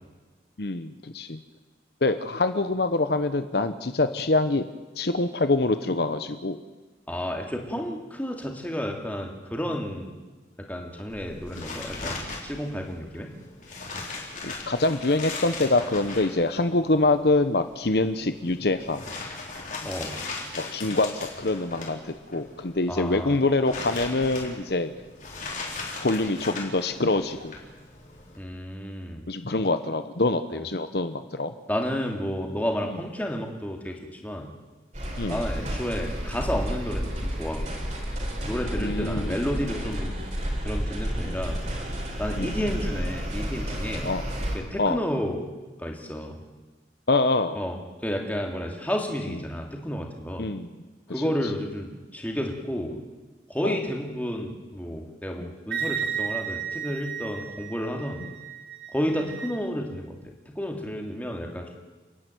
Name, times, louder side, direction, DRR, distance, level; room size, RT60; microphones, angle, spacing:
voice 1, 0.6-1.4 2.0-4.7 5.0-6.6 11.5-11.6 14.4-19.0 20.6-24.9 26.0-27.5 29.3-31.5 35.2-35.4 38.8-39.4 41.2-41.4 42.4-42.6 44.0-44.2 44.8-45.0 47.1-47.6 50.4-50.7 51.2-51.3 53.6-53.8 55.4-55.5, left 2 dB, 60° left, 10 dB, 0.9 m, -25 dB
voice 2, 7.1-10.1 10.7-12.2 12.4-13.3 19.8-20.2 22.9-23.4 28.4-29.3 31.7-34.5 35.3-37.8 38.4-40.1 40.6-41.6 42.2-44.1 44.5-45.4 45.8-46.4 47.5-47.8 48.0-50.5 51.1-53.0 53.5-58.2 58.9-61.7, equal, 10° left, 1 dB, 2.7 m, -31 dB
sound 1, 11.1-28.4, left 3 dB, 45° left, 4.2 m, -39 dB
sound 2, 34.9-44.6, equal, 40° right, 4.3 m, -31 dB
Wind instrument woodwind instrument, 55.7-59.6, right 7 dB, 85° right, 3.9 m, -33 dB
30.0 x 11.0 x 9.3 m, 1.3 s
head